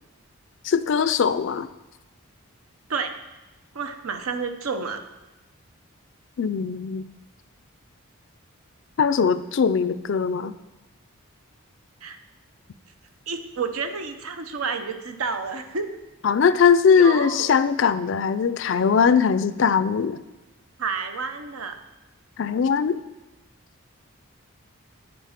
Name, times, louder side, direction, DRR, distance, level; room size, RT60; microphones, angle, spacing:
voice 1, 0.6-1.7 6.4-7.0 9.0-10.5 16.2-20.2 22.4-23.0, left 6 dB, 55° left, 14 dB, 0.4 m, -20 dB
voice 2, 3.7-5.0 12.0-12.2 13.3-15.9 16.9-17.6 20.8-21.8, right 5 dB, 80° right, 7 dB, 0.8 m, -30 dB
9.3 x 5.1 x 5.8 m, 1.0 s
head